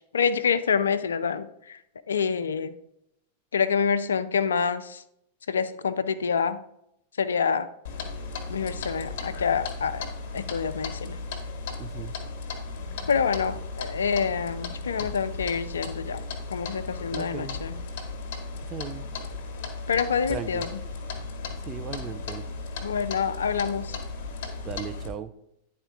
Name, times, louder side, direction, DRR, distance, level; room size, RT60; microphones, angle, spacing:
voice 1, 0.0-1.8 2.1-2.7 3.5-5.0 5.5-6.6 7.2-7.7 8.5-10.1 10.3-11.2 13.1-16.2 16.5-17.8 19.9-20.8 22.8-24.0, left 6 dB, 70° left, 13 dB, 0.4 m, -27 dB
Clock, 7.8-25.1, left 3 dB, 50° left, 1.2 m, -36 dB
voice 2, 11.8-12.1 17.1-17.6 18.7-19.0 20.3-20.6 21.7-22.4 24.6-25.3, right 7 dB, 25° right, 10 dB, 0.5 m, -36 dB
10.0 x 4.3 x 3.6 m, 0.78 s
figure-of-eight pair, 90°, 0 cm